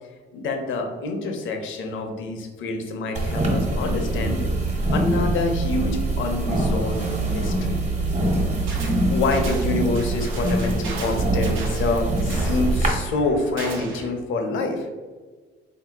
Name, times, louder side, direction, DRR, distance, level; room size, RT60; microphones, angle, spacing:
voice 1, 0.3-4.5 4.9-7.8 9.1-14.9, left 3 dB, 80° left, 4 dB, 0.7 m, -26 dB
sound 1, 3.1-12.9, right 2 dB, 35° right, 1.1 m, -24 dB
sound 2, 8.7-9.0 9.3-14.1, right 3 dB, 85° right, 0.8 m, -36 dB
3.8 x 2.8 x 3.5 m, 1.4 s
cardioid pair, 90°, 20 cm